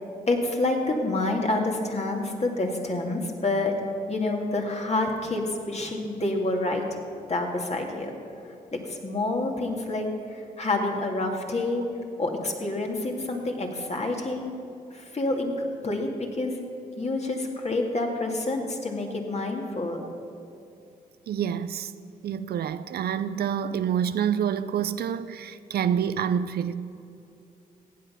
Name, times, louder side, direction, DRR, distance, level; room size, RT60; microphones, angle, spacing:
voice 1, 0.3-3.7 4.1-6.8 7.3-8.1 9.0-10.1 10.6-11.8 12.2-14.5 15.1-15.5 15.8-16.1 16.4-16.6 17.0-20.0, left 2 dB, 40° left, 2.5 m, -27 dB
voice 2, 21.3-21.9 22.2-26.8, right 8 dB, 65° right, 0.5 m, -27 dB
15.5 x 9.0 x 5.9 m
hypercardioid pair, 40°, 18 cm